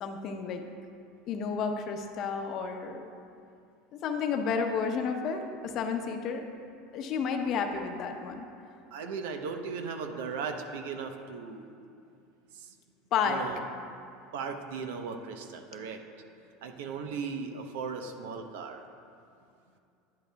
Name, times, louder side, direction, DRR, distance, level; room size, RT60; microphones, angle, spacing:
voice 1, 0.0-0.6 1.3-3.1 4.0-6.5 6.9-8.5 13.1-13.4, left 6 dB, 50° left, 5 dB, 0.8 m, -31 dB
voice 2, 8.9-11.7 13.2-13.6 14.3-16.0 16.6-18.8, right 5 dB, 80° right, 5 dB, 0.8 m, -37 dB
10.5 x 10.0 x 2.3 m, 2.6 s
supercardioid pair, 110°, 0 cm